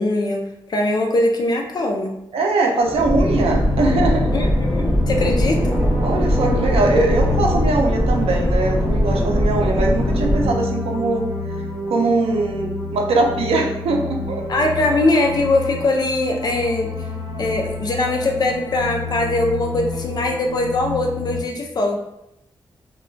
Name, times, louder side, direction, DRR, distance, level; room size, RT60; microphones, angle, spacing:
voice 1, 0.0-2.1 4.3-5.8 14.5-16.9 17.4-22.0, left 2 dB, 45° left, 1 dB, 0.4 m, -21 dB
voice 2, 2.3-4.5 6.0-11.3 11.9-14.4, right 2 dB, 90° right, 2 dB, 0.5 m, -21 dB
sound 1, 2.8-10.5, equal, ahead, 0.7 m, -20 dB
sound 2, 3.1-21.4, left 2 dB, 50° right, 1.0 m, -30 dB
2.2 x 2.1 x 3.7 m, 0.83 s
wide cardioid pair, 155°, 10 cm